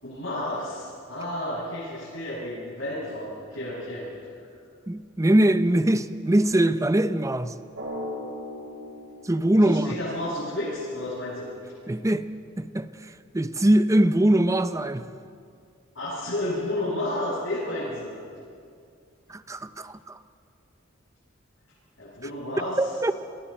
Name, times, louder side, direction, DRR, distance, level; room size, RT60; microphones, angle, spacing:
voice 1, 0.0-4.1 9.6-11.5 16.0-18.2 22.0-22.8, left 1 dB, 75° left, -9 dB, 7.1 m, -31 dB
voice 2, 4.9-7.5 9.2-10.0 11.9-12.3 12.6-15.0 19.3-20.2 22.8-23.1, right 1 dB, 15° right, 11 dB, 0.6 m, -22 dB
Drum, 7.7-10.3, left 1 dB, 75° right, 5.0 m, -38 dB
29.0 x 23.0 x 4.4 m, 2.4 s
head